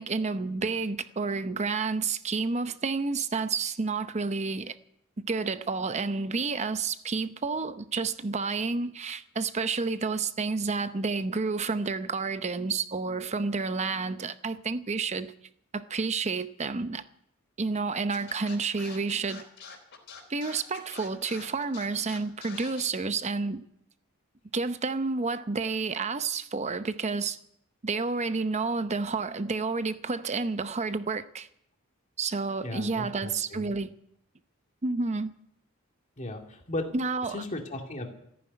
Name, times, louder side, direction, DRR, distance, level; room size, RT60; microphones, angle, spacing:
voice 1, 0.0-4.8 5.3-15.3 15.7-17.0 17.6-19.4 20.3-23.6 24.5-27.4 27.8-31.5 32.2-33.9 34.8-35.3 36.9-37.4, right 4 dB, 30° right, 0.7 m, -30 dB
Scratching (performance technique), 18.1-22.9, left 6 dB, 60° left, 4.1 m, -45 dB
voice 2, 32.6-33.7 36.2-36.8 37.3-38.1, left 1 dB, 35° left, 2.4 m, -36 dB
14.5 x 9.5 x 9.7 m
head